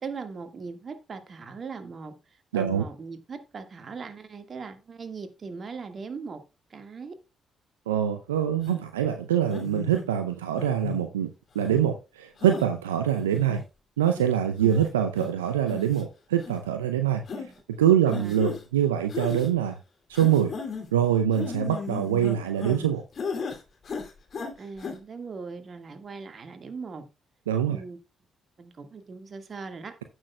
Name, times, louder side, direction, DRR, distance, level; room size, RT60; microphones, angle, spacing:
voice 1, 0.0-6.4 6.7-7.2 14.6-14.9 17.3-17.6 18.0-18.4 24.6-27.1 27.7-28.0 28.6-30.0, right 4 dB, 45° right, 1.6 m, -40 dB
voice 2, 2.5-2.8 7.9-13.6 14.0-17.2 17.8-19.8 20.1-20.5 20.9-23.0 27.5-27.8, right 9 dB, 85° right, 0.5 m, -24 dB
sound 1, 8.7-8.8 9.5-10.0 10.6-11.0 11.6-11.8 12.4-12.7 13.2-13.6 14.2-14.3 14.6-14.8 15.2-15.3 15.7-16.0 16.4-16.5 17.3-17.5 18.1-18.6 19.1-19.5 20.1-20.9 21.3-22.8 23.2-23.6 23.8-24.5 24.8-24.9, left 5 dB, 50° left, 2.6 m, -35 dB
15.5 x 6.2 x 2.3 m
hypercardioid pair, 40°, 0 cm